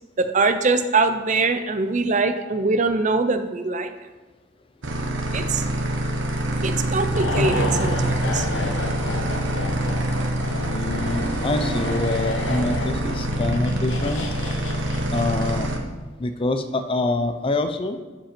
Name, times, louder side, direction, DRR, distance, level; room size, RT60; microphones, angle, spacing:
voice 1, 0.2-3.9 5.3-5.7 6.6-8.5, right 3 dB, 35° right, 9 dB, 0.5 m, -22 dB
sound 1, 4.8-15.8, right 1 dB, 65° right, 1.0 m, -26 dB
sound 2, 7.1-15.7 16.0-16.1, left 1 dB, 70° left, 0.9 m, -30 dB
voice 2, 10.7-14.2 15.1-15.7 16.2-18.0, left 2 dB, 25° left, 8 dB, 0.4 m, -26 dB
12.0 x 5.2 x 4.4 m, 1.2 s
head